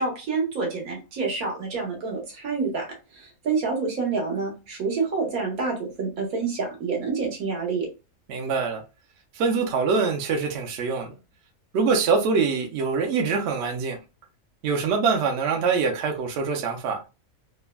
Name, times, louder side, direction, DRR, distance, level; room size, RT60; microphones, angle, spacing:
voice 1, 0.0-2.9 3.1-7.9 16.5-16.6, right 4 dB, 80° right, 1.5 m, -28 dB
voice 2, 8.3-8.8 9.4-11.1 11.7-14.0 14.6-17.0, right 5 dB, 65° right, 0.7 m, -24 dB
3.3 x 2.1 x 2.2 m
omnidirectional pair, 1.5 m